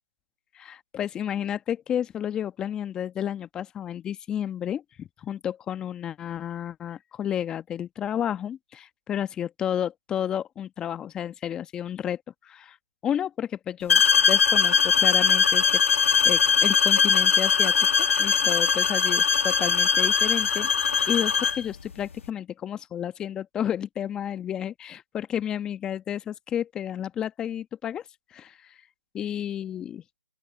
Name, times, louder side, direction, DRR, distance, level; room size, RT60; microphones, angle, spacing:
voice 1, 0.5-12.8 13.0-15.8 16.2-20.7 21.1-28.0 28.3-28.8 29.1-30.2, left 9 dB, 10° left, 1.1 m, -31 dB
sound 1, 13.9-21.6, left 6 dB, 65° left, 1.9 m, -21 dB
open air
figure-of-eight pair, 155°, 8 cm